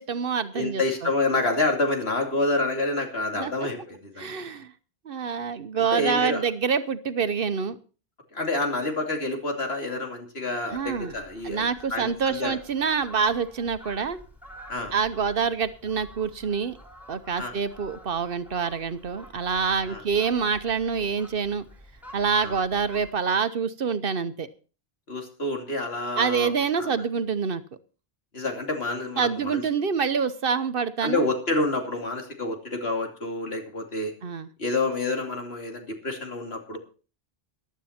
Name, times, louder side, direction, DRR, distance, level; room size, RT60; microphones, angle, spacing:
voice 1, 0.0-1.1 3.4-3.5 4.2-4.7 5.0-7.8 10.7-11.1 11.4-14.2 14.9-16.8 17.1-21.6 22.1-24.5 26.2-27.6 29.2-31.3 34.2-34.5, right 6 dB, 65° right, 12 dB, 1.0 m, -26 dB
voice 2, 0.5-4.4 5.7-6.4 8.3-12.6 14.7-14.9 17.4-17.5 19.8-20.0 22.4-22.5 25.1-26.5 26.8-26.9 28.3-29.6 31.0-34.1 34.6-36.8, left 2 dB, 80° left, 3 dB, 3.0 m, -28 dB
Fowl, 10.7-23.1, equal, ahead, 3.9 m, -48 dB
15.0 x 11.5 x 4.3 m, 0.36 s
omnidirectional pair, 1.0 m